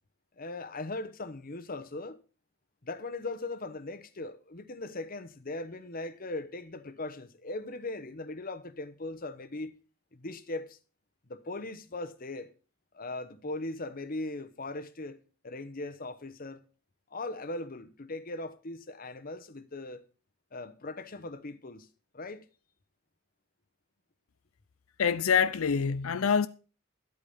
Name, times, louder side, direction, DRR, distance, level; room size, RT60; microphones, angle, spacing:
voice 1, 0.4-2.2 2.8-9.8 10.1-10.8 11.3-12.5 12.9-15.2 15.4-16.6 17.1-20.0 20.5-21.9 22.1-22.4, left 2 dB, 45° left, 1.0 m, -39 dB
voice 2, 25.0-26.5, left 6 dB, 90° left, 0.5 m, -25 dB
12.0 x 8.6 x 5.5 m
head